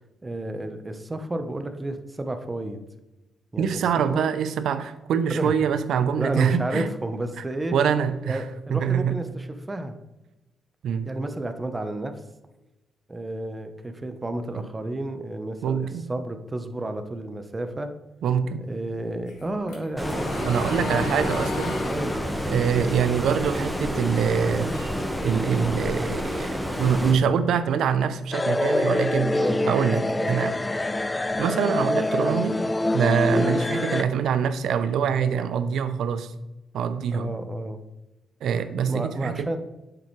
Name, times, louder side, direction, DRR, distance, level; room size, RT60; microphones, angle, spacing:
voice 1, 0.2-2.8 3.5-3.8 4.1-4.3 5.3-5.5 6.2-7.7 8.2-10.0 11.0-12.2 13.1-17.9 18.7-21.2 21.9-22.2 22.7-22.9 29.3-29.6 30.1-30.3 33.2-33.6 37.1-37.8 38.9-39.6, right 1 dB, 25° right, 8 dB, 0.9 m, -31 dB
voice 2, 3.6-6.9 7.7-8.4 8.7-9.2 10.8-11.1 15.6-16.1 18.2-18.7 20.5-21.8 22.5-24.8 25.2-26.5 26.8-29.4 29.7-30.6 31.4-32.6 32.9-36.3 36.7-37.4 38.4-39.6, right 7 dB, 80° right, 12 dB, 0.6 m, -24 dB
sound 1, 19.3-23.8 24.2-25.7, left 3 dB, 85° left, 1.8 m, -35 dB
Stream, 20.0-27.2, equal, 5° left, 1.5 m, -29 dB
sound 2, 28.3-34.0, left 2 dB, 20° left, 0.4 m, -25 dB
8.5 x 6.8 x 3.2 m, 1.0 s
cardioid pair, 75°, 0 cm